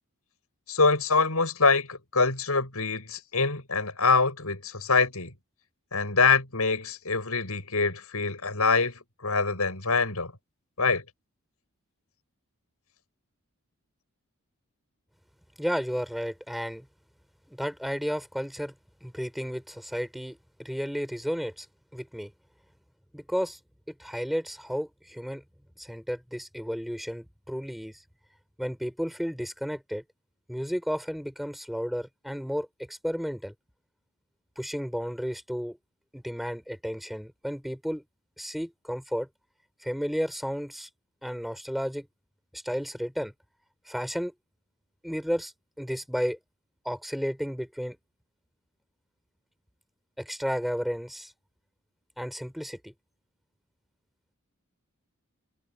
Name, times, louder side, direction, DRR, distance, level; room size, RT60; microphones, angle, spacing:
voice 1, 0.7-5.3 5.9-10.3 10.8-11.0, left 4 dB, 80° left, 6.6 m, -25 dB
voice 2, 15.6-16.9 17.5-18.7 19.0-21.7 21.9-22.3 23.1-23.6 23.9-25.4 25.8-28.0 28.6-30.0 30.5-33.5 34.6-35.8 36.1-38.0 38.4-39.3 39.8-40.9 41.2-42.1 42.5-43.3 43.9-44.3 45.0-45.5 45.8-46.4 46.8-48.0 50.2-51.3 52.2-52.9, equal, ahead, 5.5 m, -32 dB
head